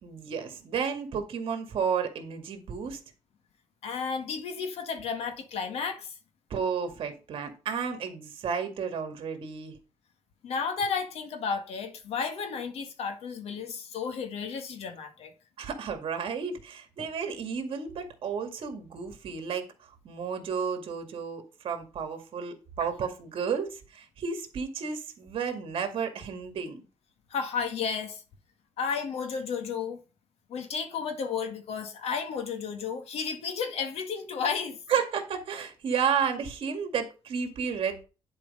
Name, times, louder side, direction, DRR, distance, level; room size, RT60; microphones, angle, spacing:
voice 1, 0.0-3.0 6.5-9.8 15.6-26.8 34.9-38.0, right 6 dB, 55° right, 2.1 m, -32 dB
voice 2, 3.8-6.1 10.4-15.3 27.3-28.2 28.8-30.0 30.5-34.8, left 6 dB, 70° left, 1.8 m, -32 dB
11.0 x 4.7 x 5.4 m
cardioid pair, 165°, 11 cm